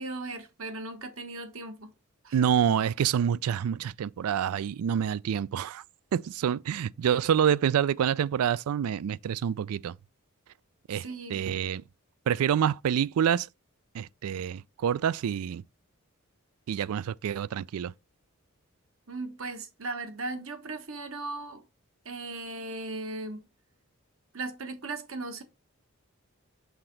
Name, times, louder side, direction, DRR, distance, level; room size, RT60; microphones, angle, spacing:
voice 1, 0.0-1.9 2.2-2.4 10.9-11.5 19.1-21.6 22.0-23.4 24.3-25.4, right 2 dB, 70° right, 1.2 m, -37 dB
voice 2, 2.3-5.8 6.1-9.9 10.9-11.0 11.3-11.8 12.3-13.5 13.9-15.6 16.7-17.9, right 8 dB, 90° right, 0.3 m, -27 dB
5.9 x 3.8 x 4.5 m
head